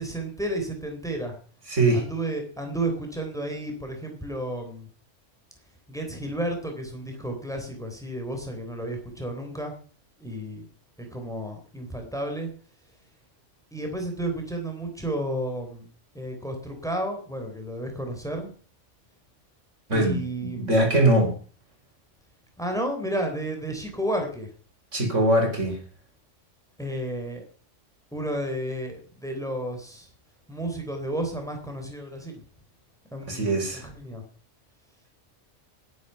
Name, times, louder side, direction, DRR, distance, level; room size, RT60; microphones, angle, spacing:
voice 1, 0.0-1.3 1.9-4.9 5.9-9.7 10.2-10.6 11.0-12.5 13.7-15.9 16.1-18.5 19.9-20.7 22.6-24.5 26.8-27.4 28.1-30.1 30.5-32.4 33.1-34.2, right 1 dB, 5° left, 3 dB, 3.9 m, -32 dB
voice 2, 1.7-2.0 19.9-21.3 24.9-25.8 33.3-33.9, right 1 dB, 80° right, 2 dB, 5.2 m, -22 dB
20.0 x 9.6 x 5.8 m, 0.42 s
omnidirectional pair, 1.2 m